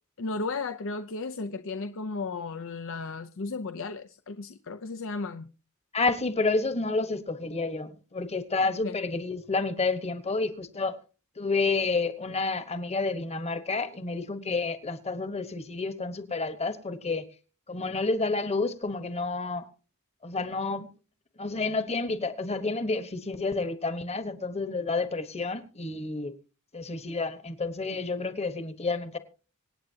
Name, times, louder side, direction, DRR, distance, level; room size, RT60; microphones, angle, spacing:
voice 1, 0.2-5.5 8.6-8.9, left 3 dB, 65° left, 0.7 m, -35 dB
voice 2, 5.9-11.0 11.4-17.3 17.7-19.7 20.2-20.9 21.4-26.3 26.7-29.2, left 3 dB, 30° left, 1.2 m, -30 dB
26.0 x 8.8 x 2.8 m
head